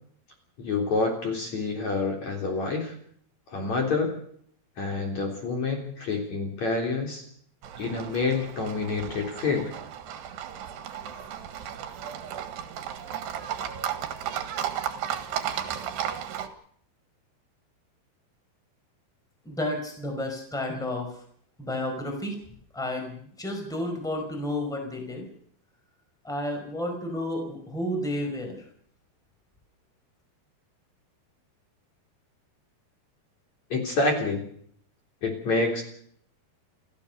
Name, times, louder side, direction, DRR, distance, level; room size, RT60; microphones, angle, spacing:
voice 1, 0.6-2.9 3.5-4.1 4.8-7.2 7.8-9.7 33.7-34.4 35.2-35.8, left 3 dB, 45° left, 2 dB, 4.6 m, -27 dB
Livestock farm animals working animals, 7.6-16.5, right 9 dB, 85° right, 3.8 m, -34 dB
voice 2, 19.4-21.2 21.6-22.4 22.7-25.3 26.2-28.6, left 1 dB, ahead, 3 dB, 4.4 m, -31 dB
29.5 x 14.5 x 6.7 m, 0.64 s
omnidirectional pair, 4.7 m